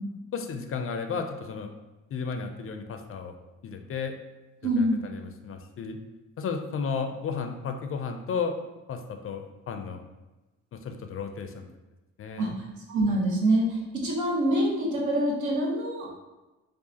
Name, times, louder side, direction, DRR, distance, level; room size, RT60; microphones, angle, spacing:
voice 1, 0.3-1.7 2.1-3.3 3.6-4.2 4.8-6.0 6.4-8.5 8.9-10.1 10.7-11.7 12.2-12.6, left 5 dB, 45° left, 6 dB, 0.4 m, -33 dB
voice 2, 4.6-5.1 12.4-12.5 12.9-13.7 13.9-16.2, right 1 dB, 70° right, -2 dB, 1.1 m, -25 dB
4.7 x 2.4 x 2.8 m, 1.1 s
cardioid pair, 90°, 30 cm